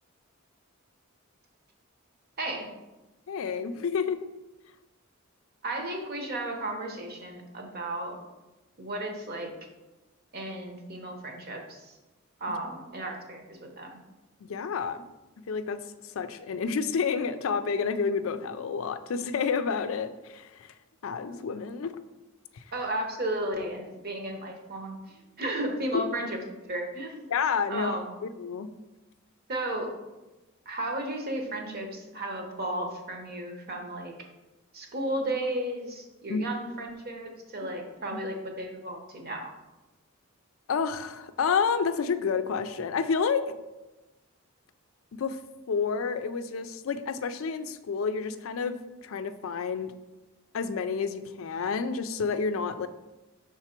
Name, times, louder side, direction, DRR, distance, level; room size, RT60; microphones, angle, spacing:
voice 1, 2.4-2.7 5.6-8.2 8.8-9.5 10.3-11.9 12.4-14.0 22.7-27.3 27.7-28.1 29.5-30.0 30.7-34.1 34.7-39.5, right 1 dB, 45° right, 2 dB, 0.9 m, -34 dB
voice 2, 3.3-4.2 12.5-12.6 14.4-15.1 15.5-20.7 21.0-21.9 22.5-22.6 27.3-27.9 28.2-28.7 36.3-36.5 38.1-38.2 40.7-43.5 45.1-45.4 45.7-48.8 49.0-49.9 50.5-52.9, left 5 dB, 70° left, 11 dB, 0.4 m, -29 dB
5.9 x 3.6 x 4.4 m, 1.1 s
head